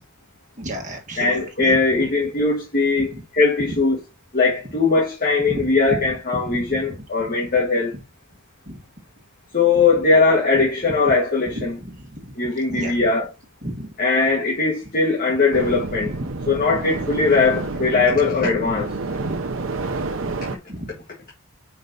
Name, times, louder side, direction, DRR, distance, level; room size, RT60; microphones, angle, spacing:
voice 1, 0.6-1.8 3.1-3.2 5.5-5.7 6.3-6.8 8.7-8.8 11.5-13.0 13.6-13.9 16.1-16.3 19.2-19.4 20.2-20.3 20.7-20.9, equal, 35° right, 1.6 m, -33 dB
voice 2, 1.2-4.0 4.3-7.9 9.5-11.8 12.4-13.2 14.0-16.1 16.5-18.9, left 4 dB, 40° left, 1.7 m, -20 dB
sound 1, 15.5-20.6, right 3 dB, 70° right, 0.7 m, -29 dB
5.4 x 4.8 x 3.9 m
head